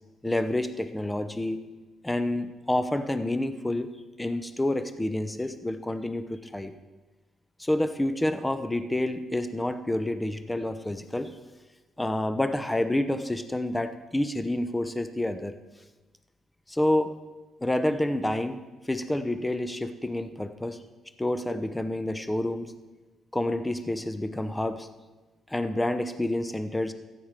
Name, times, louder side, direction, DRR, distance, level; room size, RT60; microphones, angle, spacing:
voice 1, 0.2-1.6 2.0-3.9 4.2-6.7 7.6-11.4 12.0-15.5 16.7-17.1 17.6-18.6 18.9-20.8 21.2-22.7 23.3-24.9 25.5-26.9, left 1 dB, 10° left, 10 dB, 0.8 m, -28 dB
14.5 x 4.9 x 7.6 m, 1.2 s
cardioid pair, 90°, 0 cm